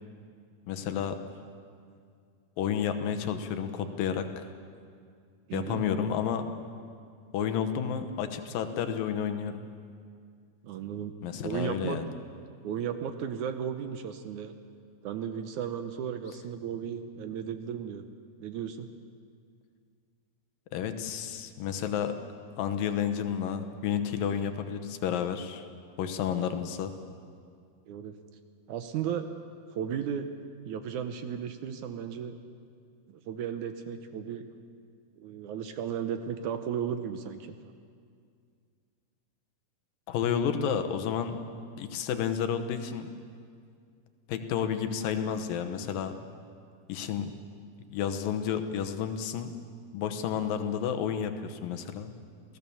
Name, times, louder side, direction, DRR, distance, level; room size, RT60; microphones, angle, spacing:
voice 1, 0.7-1.2 2.6-4.5 5.5-6.5 7.3-9.6 11.2-12.1 20.7-22.1 22.6-25.6 26.0-26.9 40.1-41.4 41.8-43.1 44.3-46.1 46.9-47.3 47.9-49.5 49.9-52.1, left 8 dB, 80° left, 8 dB, 2.8 m, -31 dB
voice 2, 5.5-5.8 10.6-11.1 11.4-12.0 12.6-14.6 15.0-18.1 18.4-18.9 27.9-28.1 28.7-29.3 29.7-30.3 30.7-32.4 33.1-34.5 35.2-37.6, right 8 dB, 70° right, 8 dB, 2.1 m, -35 dB
27.0 x 17.5 x 7.1 m, 2.2 s
omnidirectional pair, 4.0 m